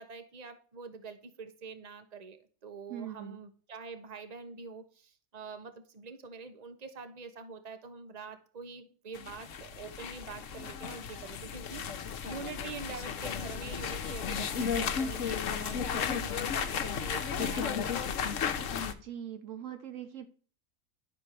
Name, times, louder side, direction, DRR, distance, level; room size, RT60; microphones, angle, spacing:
voice 1, 0.0-18.2, right 4 dB, 30° right, 8 dB, 1.1 m, -45 dB
voice 2, 2.9-3.4 19.0-20.3, right 9 dB, 70° right, 9 dB, 1.1 m, -41 dB
sound 1, 9.1-18.9, left 7 dB, 70° left, 1.2 m, -34 dB
11.5 x 4.4 x 6.6 m, 0.41 s
omnidirectional pair, 1.4 m